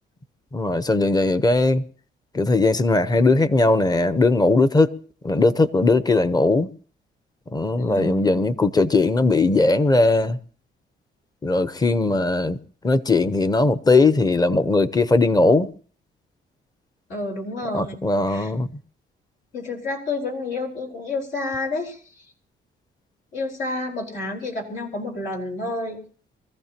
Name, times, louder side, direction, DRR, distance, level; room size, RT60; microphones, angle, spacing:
voice 1, 0.5-1.8 2.3-4.9 5.2-6.7 7.5-10.4 11.4-12.6 12.8-15.7 17.7-18.7, left 3 dB, 20° left, 0.8 m, -19 dB
voice 2, 7.7-8.3 17.1-18.0 18.3-18.5 19.5-22.2 23.3-26.0, left 2 dB, 80° left, 4.7 m, -29 dB
24.5 x 14.5 x 3.0 m
cardioid pair, 90°, 20 cm